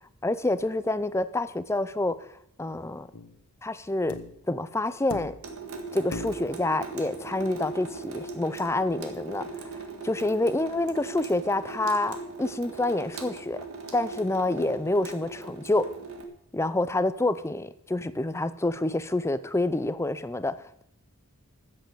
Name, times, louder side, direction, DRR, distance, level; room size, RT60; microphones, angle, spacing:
voice 1, 0.2-2.2 2.6-3.1 3.6-4.2 4.5-5.4 5.9-9.7 10.0-13.6 13.9-15.9 16.5-20.8, left 2 dB, 10° left, 14 dB, 0.5 m, -27 dB
sound 1, 3.1-3.4 4.1-4.5 5.1-5.6 6.1-6.6 8.0-8.1, left 3 dB, 90° left, 1.3 m, -39 dB
Water tap faucet / Sink (filling or washing) / Drip, 5.4-16.2, right 3 dB, 75° right, 1.8 m, -39 dB
13.5 x 7.7 x 6.8 m, 0.73 s
head